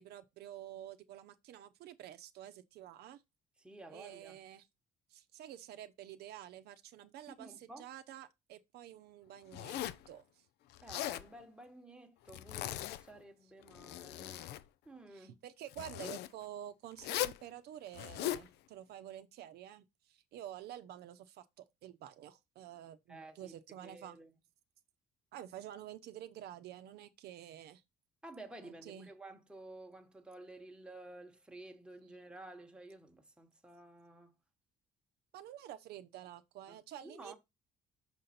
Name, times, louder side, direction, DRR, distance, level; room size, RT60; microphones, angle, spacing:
voice 1, 0.0-3.2 3.9-4.7 5.1-10.4 15.1-24.2 25.3-27.8 28.6-29.1 35.3-37.3, right 11 dB, 75° right, 0.7 m, -49 dB
voice 2, 3.6-4.4 7.3-7.9 10.8-14.5 14.8-15.4 23.1-23.6 23.8-24.3 28.2-34.3 36.7-37.3, right 2 dB, 5° right, 1.1 m, -52 dB
Zipper (clothing), 9.5-10.1 10.7-11.3 12.3-13.0 13.6-14.6 15.7-16.3 17.0-17.4 17.9-18.5, left 14 dB, 80° left, 0.5 m, -39 dB
6.1 x 4.0 x 4.2 m
cardioid pair, 110°, 17 cm